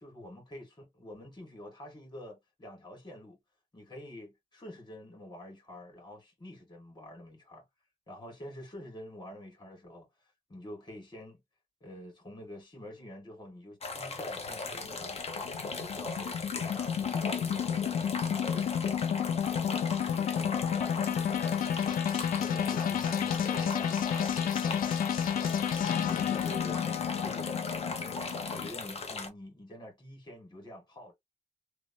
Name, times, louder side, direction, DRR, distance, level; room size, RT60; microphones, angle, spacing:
voice 1, 0.0-3.4 3.7-7.6 8.1-10.1 10.5-11.4 11.8-15.2 15.7-19.2 19.6-21.5 22.1-24.3 26.3-26.8 27.2-27.6 27.8-31.1, left 1 dB, 30° left, 1.8 m, -47 dB
sound 1, 13.8-29.3, left 3 dB, 45° left, 0.7 m, -38 dB
sound 2, 14.5-28.7, left 8 dB, 75° left, 0.4 m, -31 dB
3.0 x 2.0 x 2.7 m
cardioid pair, 95°, 15 cm